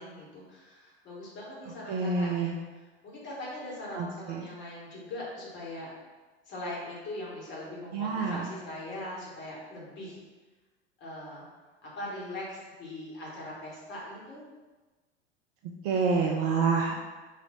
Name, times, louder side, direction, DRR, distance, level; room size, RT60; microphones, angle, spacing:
voice 1, 0.0-2.5 3.0-5.9 6.4-10.2 11.0-11.4 11.8-14.4, left 1 dB, 35° left, -5 dB, 1.5 m, -41 dB
voice 2, 1.9-2.5 3.9-4.5 7.9-8.5 15.6-17.0, right 4 dB, 35° right, 1 dB, 0.4 m, -28 dB
3.3 x 2.6 x 4.2 m, 1.3 s
figure-of-eight pair, 80°, 34 cm